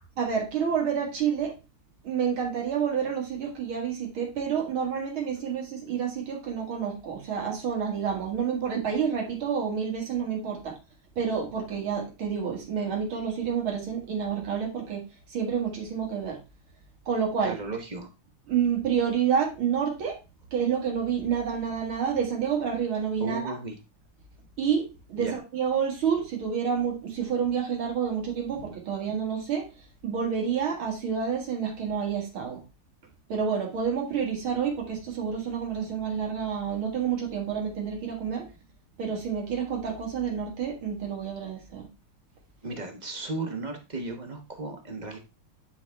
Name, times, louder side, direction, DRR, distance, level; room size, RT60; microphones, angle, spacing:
voice 1, 0.2-1.6 2.0-10.8 11.2-16.4 17.1-17.6 18.5-20.2 20.5-23.6 24.6-32.6 33.3-38.5 39.0-41.9, right 7 dB, 70° right, 0 dB, 2.7 m, -29 dB
voice 2, 17.4-18.1 23.2-23.8 25.2-25.4 42.6-45.2, right 3 dB, 35° right, 4 dB, 0.7 m, -35 dB
10.0 x 4.1 x 3.4 m, 0.28 s
omnidirectional pair, 2.4 m